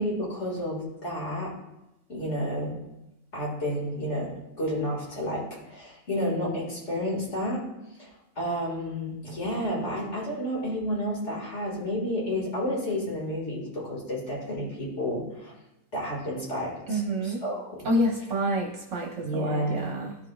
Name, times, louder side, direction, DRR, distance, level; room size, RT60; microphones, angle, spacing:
voice 1, 0.0-1.5 2.1-2.7 3.3-7.6 8.0-8.1 8.4-15.5 15.9-17.9 19.2-19.9, equal, 50° left, -4 dB, 2.3 m, -31 dB
voice 2, 16.9-17.4 17.8-20.2, equal, 55° right, 0 dB, 1.2 m, -28 dB
14.5 x 4.9 x 2.3 m, 0.92 s
omnidirectional pair, 1.5 m